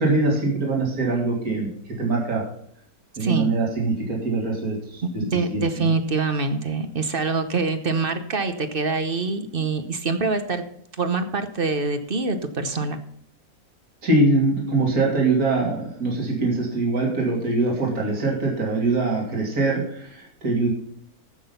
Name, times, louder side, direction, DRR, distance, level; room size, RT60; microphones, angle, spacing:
voice 1, 0.0-2.4 3.2-5.9 14.0-20.7, right 3 dB, 65° right, -2 dB, 3.4 m, -23 dB
voice 2, 3.2-3.5 5.2-10.6 11.0-13.0, right 4 dB, 40° right, 9 dB, 1.0 m, -25 dB
14.5 x 6.2 x 5.5 m, 0.68 s
omnidirectional pair, 1.7 m